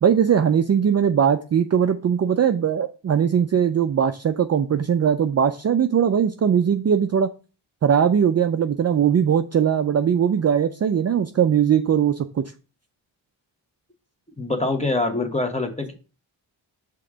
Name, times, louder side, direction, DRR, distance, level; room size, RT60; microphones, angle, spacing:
voice 1, 0.0-7.3 7.8-12.4, right 8 dB, 35° right, 8 dB, 0.4 m, -20 dB
voice 2, 14.4-15.9, left 2 dB, 15° left, 5 dB, 1.3 m, -24 dB
5.8 x 3.7 x 5.0 m, 0.34 s
cardioid pair, 60°, 48 cm